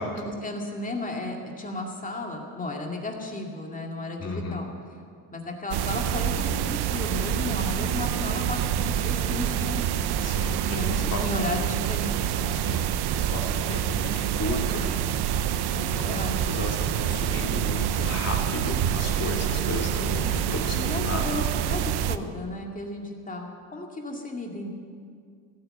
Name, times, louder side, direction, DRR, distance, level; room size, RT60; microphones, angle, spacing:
voice 1, 0.0-4.7 5.3-9.9 10.7-12.6 15.7-16.6 20.2-20.3 20.7-24.7, left 2 dB, 15° left, 0 dB, 2.3 m, -34 dB
voice 2, 4.2-4.6 10.2-11.2 12.6-12.9 13.2-15.3 15.7-21.2, left 2 dB, 30° left, 0 dB, 2.8 m, -34 dB
sound 1, 5.7-22.2, right 10 dB, 55° right, 0.8 m, -27 dB
16.5 x 10.0 x 7.8 m, 2.2 s
cardioid pair, 105°, 47 cm